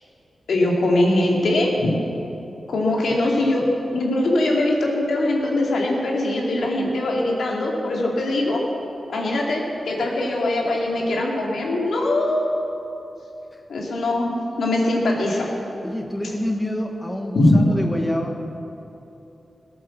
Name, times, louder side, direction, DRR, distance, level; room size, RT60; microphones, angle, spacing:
voice 1, 0.5-2.0 2.7-3.7 3.9-8.6 9.1-12.5 13.7-15.5 17.3-17.6, left 1 dB, 80° left, -1 dB, 2.6 m, -21 dB
voice 2, 3.2-3.7 13.5-13.6 15.8-18.4, left 1 dB, 10° left, 2 dB, 1.4 m, -28 dB
19.0 x 8.7 x 7.3 m, 2.9 s
wide cardioid pair, 90°, 0 cm